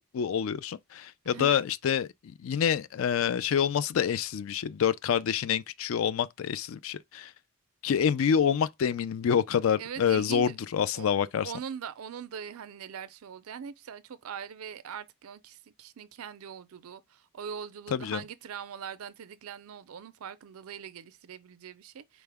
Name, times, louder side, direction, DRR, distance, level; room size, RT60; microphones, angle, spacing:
voice 1, 0.1-7.3 7.8-11.5 17.9-18.2, left 8 dB, 70° left, 0.3 m, -27 dB
voice 2, 1.2-1.7 9.8-10.6 10.9-22.2, right 7 dB, 90° right, 0.4 m, -42 dB
4.6 x 2.0 x 3.3 m
head